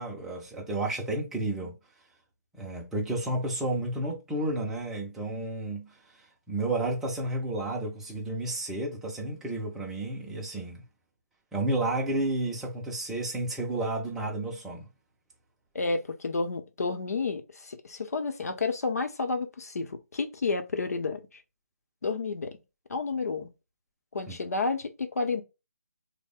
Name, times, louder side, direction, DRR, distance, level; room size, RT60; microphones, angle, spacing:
voice 1, 0.0-1.8 2.6-10.8 11.5-14.9 24.3-24.4, right 2 dB, 5° right, 0.4 m, -31 dB
voice 2, 15.7-21.4 22.0-22.6 22.9-23.5 24.1-25.4, left 4 dB, 70° left, 0.8 m, -31 dB
3.3 x 2.0 x 3.5 m
hypercardioid pair, 160°, 9 cm